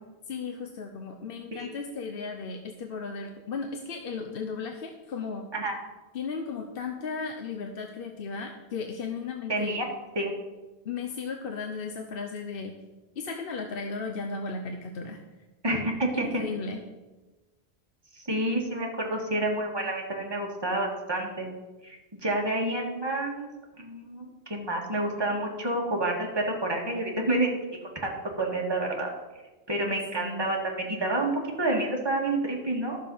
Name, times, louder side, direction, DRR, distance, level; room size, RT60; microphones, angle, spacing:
voice 1, 0.3-5.4 6.1-9.8 10.8-12.7 13.2-15.2 15.7-15.9 16.1-16.8 29.8-30.5, left 5 dB, 65° left, 4 dB, 1.0 m, -35 dB
voice 2, 9.5-9.9 10.2-10.3 15.6-16.3 18.1-21.5 21.8-23.5 23.8-27.5 28.0-29.1 29.7-33.0, right 2 dB, 25° right, -1 dB, 1.8 m, -29 dB
11.5 x 6.7 x 5.4 m, 1.2 s
omnidirectional pair, 1.0 m